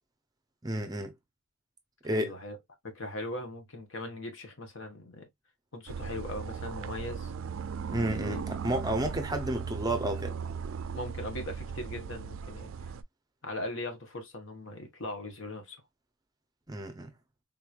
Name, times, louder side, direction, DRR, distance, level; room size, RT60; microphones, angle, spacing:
voice 1, 0.6-1.1 2.0-2.3 7.9-10.4 16.7-17.1, right 1 dB, 20° right, 0.6 m, -31 dB
voice 2, 2.0-2.6 2.8-5.3 5.7-7.3 8.2-8.4 10.9-12.7 13.4-15.8, left 2 dB, 65° left, 1.2 m, -39 dB
sound 1, 5.9-13.0, right 6 dB, 70° right, 0.4 m, -37 dB
3.8 x 3.1 x 2.4 m
head